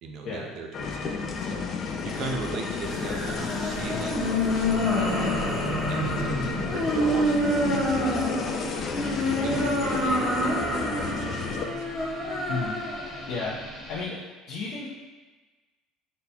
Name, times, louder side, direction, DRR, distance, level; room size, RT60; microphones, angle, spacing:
voice 1, 0.0-1.7 2.0-5.3 5.9-8.2 8.5-8.9 9.4-12.1, right 4 dB, 50° right, 2 dB, 0.5 m, -39 dB
sound 1, 0.7-11.7, left 5 dB, 35° left, 0.3 m, -32 dB
sound 2, 2.8-14.0, equal, ahead, 0.9 m, -28 dB
voice 2, 13.3-14.2 14.5-14.9, left 4 dB, 60° left, -8 dB, 0.7 m, -33 dB
4.1 x 2.2 x 4.2 m, 1.3 s
cardioid pair, 155°, 0 cm